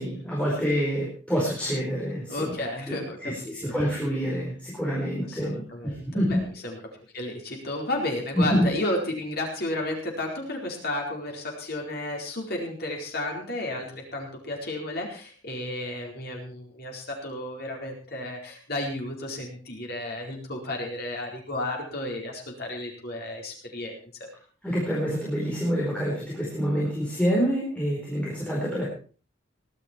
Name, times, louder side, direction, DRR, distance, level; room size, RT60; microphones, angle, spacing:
voice 1, 0.0-2.5 2.9-6.4 8.3-8.7 24.6-28.9, equal, 5° left, -5 dB, 4.5 m, -27 dB
voice 2, 2.3-3.7 5.3-6.8 7.1-24.0, left 1 dB, 55° left, 0 dB, 4.5 m, -32 dB
18.5 x 12.0 x 4.5 m, 0.39 s
head